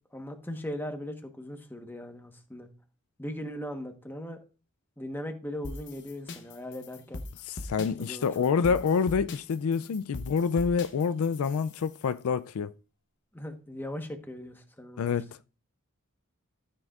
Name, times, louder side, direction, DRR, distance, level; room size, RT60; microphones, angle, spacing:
voice 1, 0.1-2.7 3.2-4.4 5.0-7.2 8.0-8.8 13.3-15.1, left 1 dB, 10° left, 1.1 m, -39 dB
sound 1, 5.6-12.0, left 2 dB, 55° left, 0.8 m, -41 dB
voice 2, 7.4-12.7 15.0-15.4, left 6 dB, 75° left, 0.4 m, -27 dB
13.0 x 7.7 x 2.4 m
head